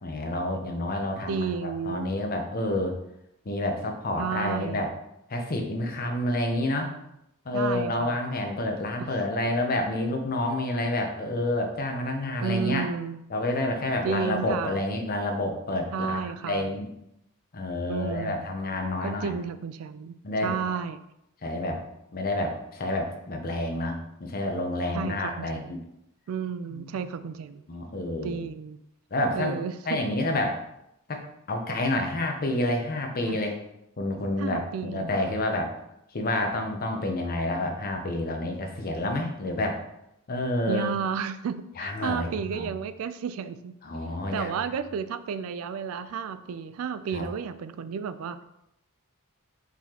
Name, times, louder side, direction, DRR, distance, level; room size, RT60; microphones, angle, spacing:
voice 1, 0.0-2.9 3.4-4.9 5.3-6.9 7.4-12.9 13.3-16.2 16.4-16.9 17.5-19.3 20.2-20.5 21.4-21.8 22.1-25.8 26.7-27.0 27.7-28.4 29.1-29.6 29.9-30.6 31.1-33.6 34.0-35.7 36.1-39.8 40.3-40.9 41.8-42.7 43.8-44.5 47.1-47.2, left 1 dB, 45° left, 3 dB, 0.7 m, -29 dB
voice 2, 1.3-2.1 4.2-4.9 7.5-8.2 9.0-9.1 12.4-13.2 14.0-14.9 15.9-16.7 17.9-18.5 19.0-20.1 20.4-21.0 24.9-25.8 26.3-27.6 28.2-28.8 29.3-30.0 33.2-33.4 34.4-35.1 40.7-43.7 44.3-48.4, right 6 dB, 70° right, 12 dB, 0.3 m, -32 dB
4.8 x 4.0 x 2.8 m, 0.81 s
head